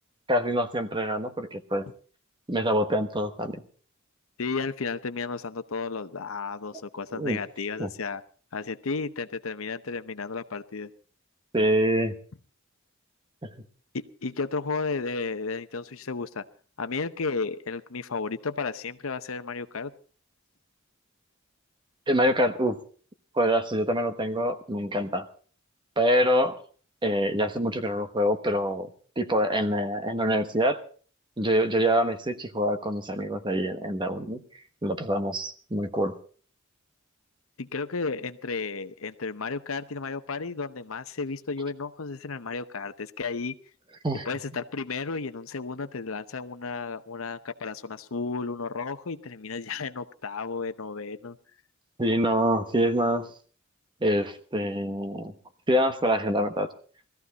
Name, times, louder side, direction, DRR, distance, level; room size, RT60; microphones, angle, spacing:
voice 1, 0.3-1.9 2.5-3.6 7.1-7.4 7.8-7.9 11.5-12.1 13.4-13.5 22.1-22.8 23.3-25.3 26.0-26.6 27.0-28.9 29.2-30.8 31.4-34.4 34.8-36.2 44.0-44.2 52.0-53.3 54.0-55.3 55.7-56.7, equal, 25° right, 8 dB, 1.2 m, -25 dB
voice 2, 4.4-8.2 8.5-10.9 13.9-16.4 16.8-19.9 37.6-43.5 44.3-51.4, left 4 dB, 85° left, 11 dB, 0.8 m, -33 dB
19.0 x 14.0 x 4.1 m, 0.42 s
head